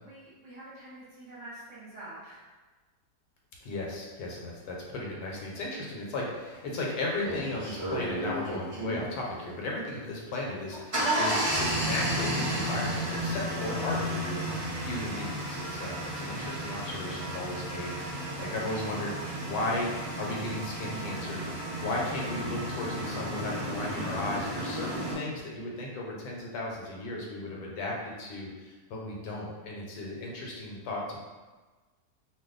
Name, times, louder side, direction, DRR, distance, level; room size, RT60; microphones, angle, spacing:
voice 1, 0.0-2.4, right 1 dB, 55° right, -8 dB, 0.9 m, -46 dB
voice 2, 3.6-14.5 14.8-19.1 19.4-19.9 20.1-21.4 21.8-31.2, left 2 dB, 75° left, -2 dB, 1.1 m, -35 dB
sound 1, 6.5-6.6 7.2-9.1 10.5-25.1, right 1 dB, 35° right, 0.6 m, -33 dB
2.6 x 2.2 x 3.6 m, 1.3 s
omnidirectional pair, 1.8 m